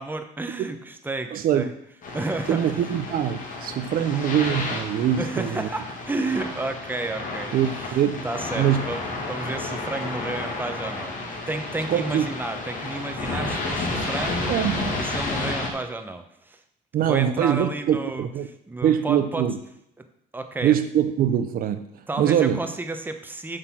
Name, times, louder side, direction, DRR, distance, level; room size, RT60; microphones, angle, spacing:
voice 1, 0.0-1.7 2.1-2.8 5.2-7.7 8.2-9.0 9.3-14.5 15.0-16.6 17.0-18.3 18.7-19.5 20.3-20.8 22.1-23.6, right 2 dB, 10° right, 7 dB, 1.0 m, -31 dB
voice 2, 1.3-1.7 2.5-5.7 7.5-8.3 8.5-8.8 11.9-12.3 14.5-14.9 16.9-18.5 18.8-19.6 20.6-21.8 22.2-22.6, right 10 dB, 60° right, 10 dB, 0.6 m, -23 dB
sound 1, 2.0-15.7, left 2 dB, 50° left, 2.4 m, -31 dB
7.7 x 6.6 x 5.9 m, 0.76 s
cardioid pair, 110°, 17 cm